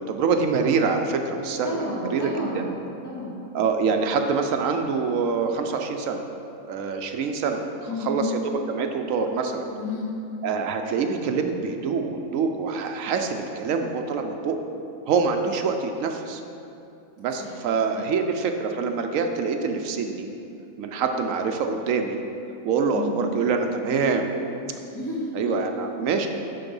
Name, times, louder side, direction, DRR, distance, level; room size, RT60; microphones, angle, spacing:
voice 1, 0.0-2.6 3.5-6.2 6.7-7.6 8.0-9.6 10.4-14.6 15.1-16.4 17.2-20.3 20.8-22.2 22.6-24.3 25.3-26.3, right 5 dB, 75° right, 5 dB, 1.0 m, -25 dB
voice 2, 1.6-2.7 3.0-3.4 7.9-8.2 9.7-10.1 17.4-17.5 17.9-18.0 22.9-23.2 24.9-25.6, left 2 dB, 15° left, -8 dB, 2.0 m, -32 dB
9.8 x 3.9 x 5.3 m, 2.7 s
omnidirectional pair, 1.4 m